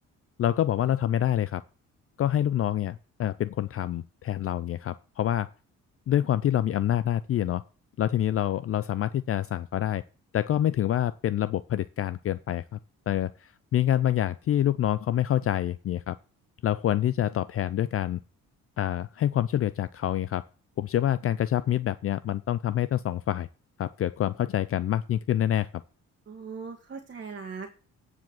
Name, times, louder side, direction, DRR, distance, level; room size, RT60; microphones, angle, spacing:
voice 1, 0.4-1.6 2.2-5.5 6.1-7.6 8.0-10.0 10.3-12.8 13.1-16.2 16.6-18.2 18.8-20.4 20.8-23.5 23.8-25.7, left 11 dB, 50° left, 16 dB, 0.5 m, -26 dB
voice 2, 26.3-27.7, right 5 dB, 40° right, 2 dB, 1.7 m, -39 dB
9.5 x 4.9 x 7.7 m, 0.36 s
cardioid pair, 90°, 30 cm